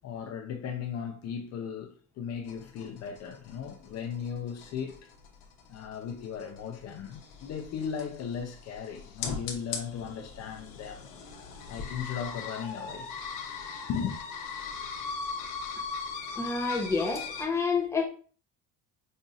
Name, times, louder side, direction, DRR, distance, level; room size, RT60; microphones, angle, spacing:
voice 1, 0.0-5.1 5.7-11.1 11.7-13.1 13.9-14.2, left 7 dB, 50° left, 0.6 m, -37 dB
sound 1, 2.5-17.4, left 5 dB, 65° left, 1.0 m, -40 dB
voice 2, 16.4-18.1, left 4 dB, 10° left, 0.7 m, -28 dB
5.3 x 2.6 x 2.4 m
cardioid pair, 125°, 34 cm